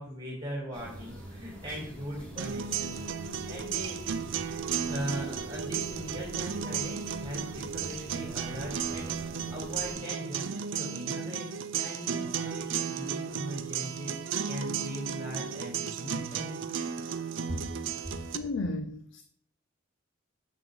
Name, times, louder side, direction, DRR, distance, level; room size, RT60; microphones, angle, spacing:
voice 1, 0.0-4.0 4.8-11.5 11.8-14.2 14.5-16.6 17.5-17.6, equal, 20° right, 3.0 m, -39 dB
sound 1, 0.7-10.0, equal, 5° left, 2.0 m, -45 dB
sound 2, 2.4-18.4, right 7 dB, 65° right, 0.5 m, -34 dB
voice 2, 18.3-19.2, left 2 dB, 60° left, 0.5 m, -33 dB
6.8 x 6.4 x 3.8 m
head